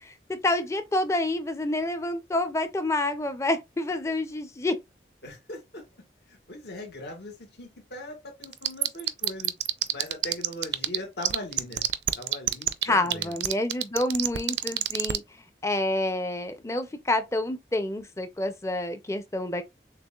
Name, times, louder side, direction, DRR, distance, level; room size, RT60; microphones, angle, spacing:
voice 1, 0.0-4.8 12.8-15.2 15.6-19.6, left 1 dB, 15° left, 0.5 m, -28 dB
voice 2, 5.2-5.8 6.3-9.5 9.9-11.8 12.2-13.4, left 1 dB, 75° left, 1.6 m, -40 dB
sound 1, 8.4-11.0 11.2-15.2, right 14 dB, 80° right, 0.4 m, -24 dB
6.6 x 2.4 x 2.3 m
head